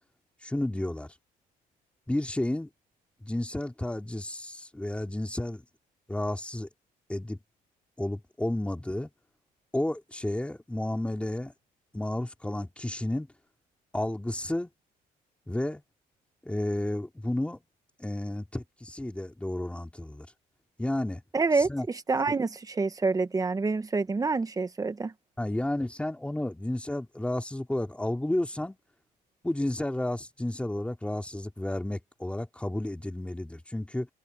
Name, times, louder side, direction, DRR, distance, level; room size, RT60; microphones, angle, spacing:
voice 1, 0.4-1.1 2.1-2.7 3.2-5.6 6.1-6.7 7.1-7.4 8.0-9.1 9.7-11.5 11.9-13.3 13.9-14.7 15.5-15.8 16.4-17.6 18.0-20.3 20.8-21.2 21.5-21.9 22.3-22.4 25.4-28.8 29.4-34.1, left 1 dB, 5° left, 3.2 m, -31 dB
voice 2, 21.3-21.7 22.1-25.1, right 4 dB, 20° right, 1.5 m, -27 dB
cardioid pair, 110°, 17 cm